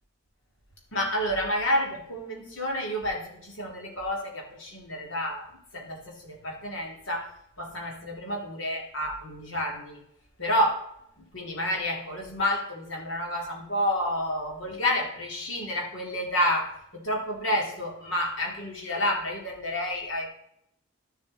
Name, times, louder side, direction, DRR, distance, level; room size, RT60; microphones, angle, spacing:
voice 1, 0.9-10.0 10.4-10.9 11.2-20.3, left 1 dB, 75° left, 0 dB, 2.7 m, -30 dB
12.0 x 7.0 x 3.9 m, 0.75 s
head